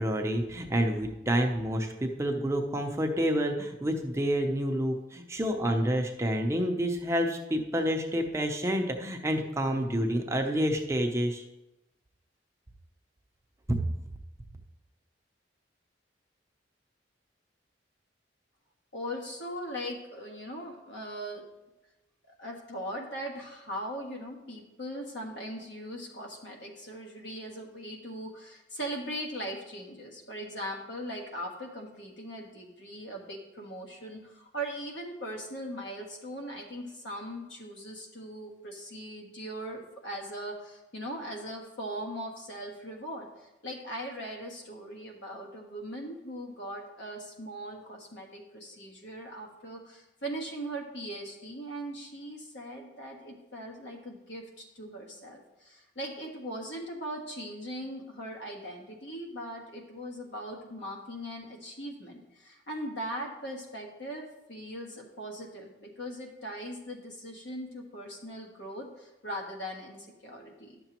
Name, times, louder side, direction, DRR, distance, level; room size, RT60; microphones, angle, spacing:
voice 1, 0.0-11.4 13.7-13.8, equal, 15° right, 3 dB, 0.6 m, -28 dB
voice 2, 18.9-21.4 22.4-70.8, equal, 75° left, 1 dB, 1.4 m, -40 dB
11.0 x 6.8 x 3.0 m, 0.97 s
head